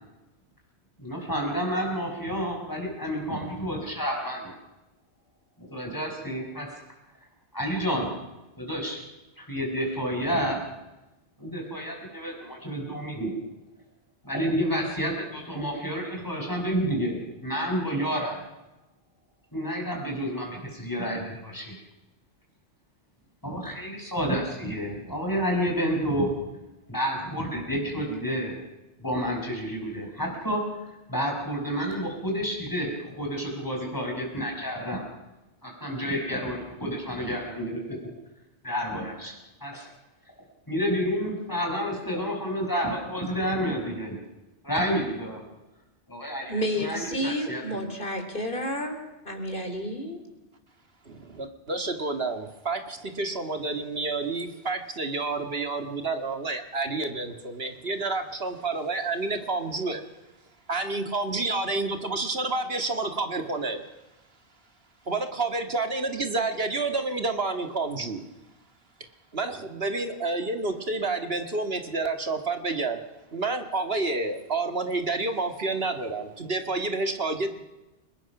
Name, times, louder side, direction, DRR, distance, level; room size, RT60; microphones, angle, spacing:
voice 1, 1.0-4.5 5.6-6.8 7.5-8.1 8.6-9.0 9.4-10.6 11.4-13.3 14.2-18.4 19.5-21.7 23.4-26.3 26.9-28.5 29.0-30.6 31.1-35.0 35.6-38.0 38.6-39.3 39.6-39.9 40.7-44.2 44.6-45.4 46.1-47.6, equal, 15° left, 0 dB, 6.2 m, -29 dB
voice 2, 46.5-50.2, equal, 45° left, 5 dB, 3.9 m, -31 dB
voice 3, 51.1-60.0 60.7-63.8 65.1-68.2 69.3-73.0 73.3-77.6, right 3 dB, 60° right, 6 dB, 2.2 m, -29 dB
30.0 x 20.0 x 6.1 m, 1.0 s
omnidirectional pair, 1.2 m